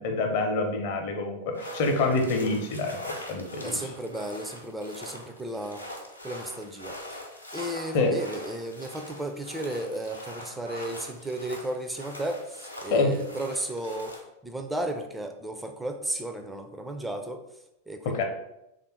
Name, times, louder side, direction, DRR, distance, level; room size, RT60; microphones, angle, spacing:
voice 1, 0.0-3.0 3.3-3.9 7.9-8.1 12.9-13.2 18.0-18.2, left 3 dB, 50° left, 4 dB, 0.7 m, -26 dB
sound 1, 1.5-14.2, left 1 dB, 85° left, 0.7 m, -42 dB
voice 2, 3.6-5.8 6.2-7.0 7.5-14.1 14.4-17.4 17.9-18.2, right 1 dB, 5° right, 5 dB, 0.4 m, -34 dB
3.3 x 2.5 x 4.3 m, 0.87 s
figure-of-eight pair, 90°, 0 cm